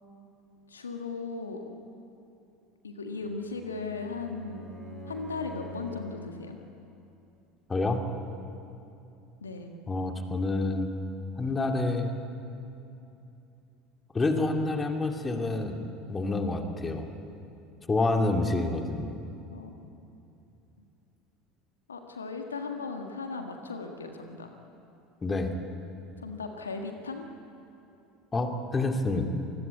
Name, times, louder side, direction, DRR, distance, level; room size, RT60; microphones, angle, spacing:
voice 1, 0.7-1.6 2.8-4.7 5.0-6.6 9.4-9.8 19.5-20.0 21.9-24.5 26.2-27.3, left 4 dB, 80° left, 4 dB, 1.6 m, -37 dB
Bowed string instrument, 3.2-6.3, equal, 10° right, 6.9 m, -44 dB
voice 2, 7.7-8.0 9.9-10.9 11.4-12.1 14.1-15.8 16.1-17.1 17.9-19.2 25.2-25.5 28.3-29.3, left 2 dB, 20° left, 4 dB, 2.5 m, -28 dB
27.5 x 20.0 x 8.4 m, 2.8 s
figure-of-eight pair, 70°, 0 cm